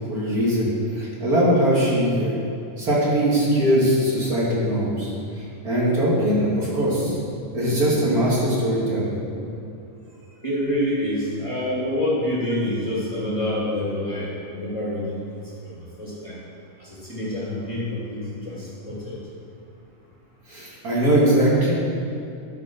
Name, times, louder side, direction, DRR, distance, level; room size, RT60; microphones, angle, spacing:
voice 1, 0.1-0.7 0.9-2.3 2.8-5.3 5.6-7.2 7.5-9.2 20.5-21.7, right 1 dB, 30° right, -7 dB, 2.4 m, -21 dB
voice 2, 10.4-15.2 15.6-16.4 16.8-19.2, left 1 dB, 10° left, -7 dB, 1.8 m, -27 dB
12.0 x 5.6 x 5.9 m, 2.7 s
omnidirectional pair, 3.8 m